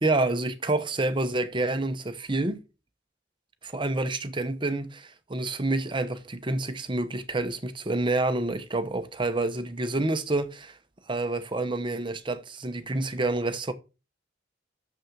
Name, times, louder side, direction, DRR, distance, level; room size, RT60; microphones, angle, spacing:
voice 1, 0.0-2.6 3.6-10.8 11.1-13.7, right 2 dB, 25° right, 0.9 m, -28 dB
7.1 x 6.4 x 7.3 m
head